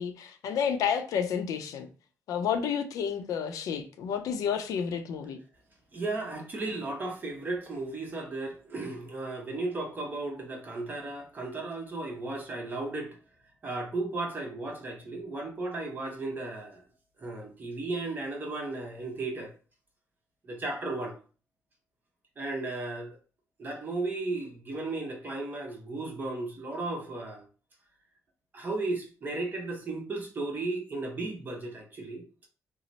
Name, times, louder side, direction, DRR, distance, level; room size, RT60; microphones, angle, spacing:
voice 1, 0.0-1.9 2.3-5.4, left 7 dB, 85° left, 0.5 m, -30 dB
voice 2, 5.9-13.1 13.6-16.8 17.2-19.5 20.4-21.2 22.4-23.2 23.6-27.4 28.5-32.2, right 2 dB, 35° right, 0.9 m, -35 dB
3.0 x 2.0 x 3.9 m
cardioid pair, 120°, 6 cm